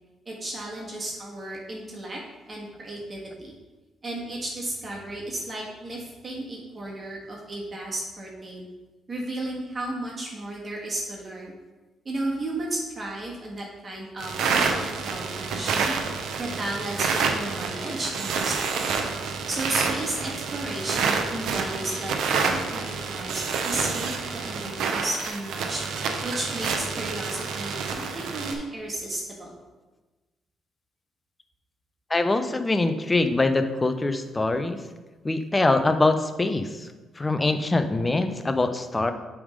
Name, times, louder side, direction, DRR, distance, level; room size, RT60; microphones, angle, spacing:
voice 1, 0.2-2.2 2.5-3.5 4.0-8.7 9.1-11.5 12.0-15.9 16.4-18.9 19.5-22.8 23.1-25.8 26.2-28.0 28.3-29.5, right 1 dB, 35° right, -3 dB, 1.5 m, -33 dB
sound 1, 14.2-28.5, right 5 dB, 80° right, 0.7 m, -28 dB
voice 2, 32.1-34.8 35.2-36.9 37.2-39.1, left 2 dB, 20° left, 8 dB, 0.5 m, -23 dB
7.0 x 3.6 x 5.1 m, 1.2 s
cardioid pair, 90°, 0 cm